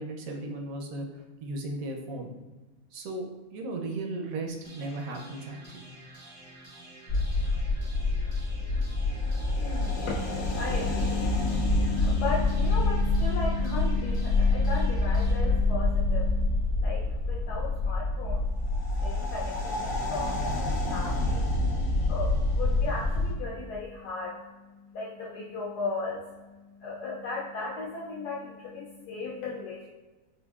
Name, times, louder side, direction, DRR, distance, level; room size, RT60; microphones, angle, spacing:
voice 1, 0.0-2.3 2.9-3.2 3.5-5.8, right 2 dB, 70° right, 2 dB, 0.9 m, -36 dB
sound 1, 4.6-16.6, right 1 dB, 35° right, 0.5 m, -48 dB
sound 2, 7.1-23.3, left 2 dB, 60° left, 0.8 m, -27 dB
voice 2, 9.6-18.4 19.0-24.4 24.9-26.3 26.8-29.9, left 4 dB, 85° left, -5 dB, 1.2 m, -35 dB
4.4 x 2.6 x 2.3 m, 1.2 s
omnidirectional pair, 1.7 m